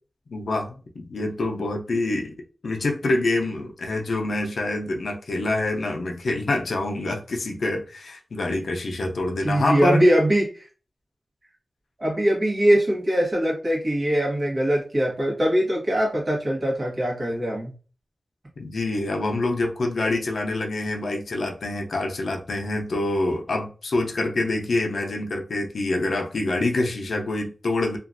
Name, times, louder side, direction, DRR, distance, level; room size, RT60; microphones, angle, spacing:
voice 1, 0.3-2.4 2.6-10.0 18.6-28.0, left 2 dB, 80° left, 0.6 m, -26 dB
voice 2, 9.4-10.6 12.0-17.7, equal, 40° right, 1.3 m, -22 dB
2.9 x 2.5 x 2.5 m
wide cardioid pair, 105°, 0 cm